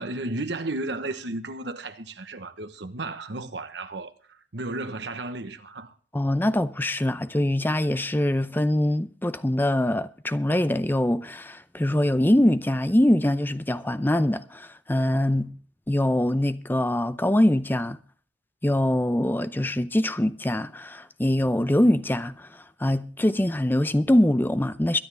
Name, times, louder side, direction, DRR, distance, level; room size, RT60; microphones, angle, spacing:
voice 1, 0.0-5.9, right 2 dB, 65° right, 1.1 m, -33 dB
voice 2, 6.1-15.5 15.9-18.0 18.6-22.5 22.8-25.0, left 1 dB, 10° left, 0.6 m, -23 dB
22.5 x 9.9 x 3.4 m
head